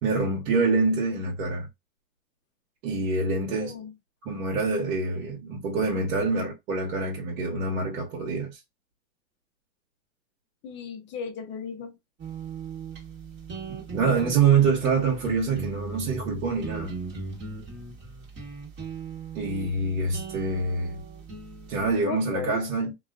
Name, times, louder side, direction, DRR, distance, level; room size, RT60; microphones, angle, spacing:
voice 1, 0.0-1.7 2.8-3.8 4.2-8.6 13.7-16.9 19.3-21.0 21.7-22.9, right 4 dB, 65° right, 1.1 m, -26 dB
voice 2, 3.5-3.9 10.6-12.0 22.0-22.6, left 6 dB, 25° left, 0.6 m, -35 dB
sound 1, 12.2-22.0, right 4 dB, 25° right, 1.1 m, -38 dB
2.3 x 2.3 x 2.3 m
hypercardioid pair, 120°, 43 cm